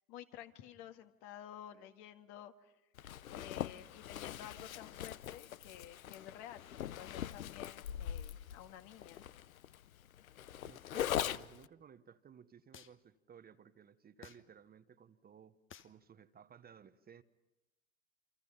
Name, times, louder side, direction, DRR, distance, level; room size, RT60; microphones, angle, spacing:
voice 1, 0.1-2.7 3.3-9.3, left 11 dB, 55° left, 7 dB, 1.9 m, -52 dB
Zipper (clothing), 3.0-11.7, left 11 dB, 90° left, 0.7 m, -42 dB
voice 2, 10.6-15.5 15.8-17.2, right 8 dB, 20° right, 11 dB, 1.0 m, -58 dB
sound 1, 11.2-11.6 12.7-13.0 14.2-14.6 15.7-16.0, left 9 dB, 30° left, 1.2 m, -54 dB
28.5 x 26.0 x 5.7 m, 1.0 s
hypercardioid pair, 95°, 41 cm